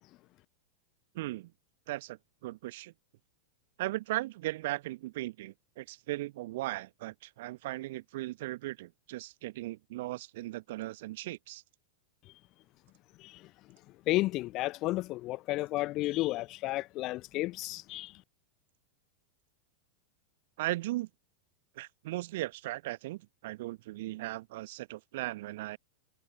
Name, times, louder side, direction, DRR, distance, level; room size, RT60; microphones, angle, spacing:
voice 1, 1.1-1.5 1.9-2.9 3.8-11.6 20.6-21.1 21.8-25.8, right 17 dB, 55° right, 1.2 m, -37 dB
voice 2, 14.1-18.1, left 18 dB, 40° left, 0.4 m, -32 dB
figure-of-eight pair, 90°, 0 cm